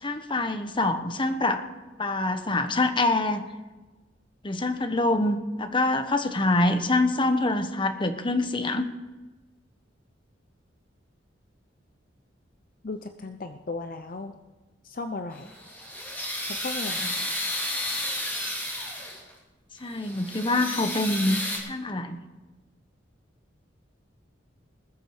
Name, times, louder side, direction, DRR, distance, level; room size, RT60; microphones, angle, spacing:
voice 1, 0.0-1.6 2.0-3.4 4.4-8.9 17.0-17.1 19.8-22.2, left 2 dB, 25° left, 8 dB, 1.1 m, -25 dB
voice 2, 12.8-14.4 14.8-15.5 16.5-17.1, left 3 dB, 45° left, 7 dB, 0.6 m, -36 dB
sound 1, 15.4-19.3 19.8-21.6, left 1 dB, 10° left, 3.1 m, -32 dB
20.0 x 7.3 x 6.5 m, 1.2 s
head